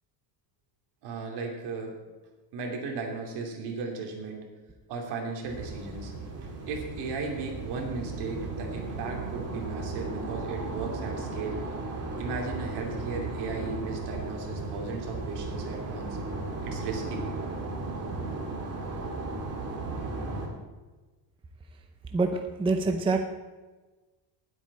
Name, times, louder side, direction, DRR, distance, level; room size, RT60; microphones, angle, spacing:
voice 1, 1.0-2.0 2.5-4.5 4.9-6.1 6.4-11.6 12.2-16.2 16.6-17.3, right 4 dB, 60° right, 1 dB, 3.0 m, -36 dB
sound 1, 5.4-20.5, right 3 dB, 35° right, 2.3 m, -35 dB
voice 2, 22.1-23.2, right 3 dB, 10° right, 5 dB, 0.6 m, -26 dB
19.5 x 8.4 x 4.2 m, 1.2 s
cardioid pair, 170°, 44 cm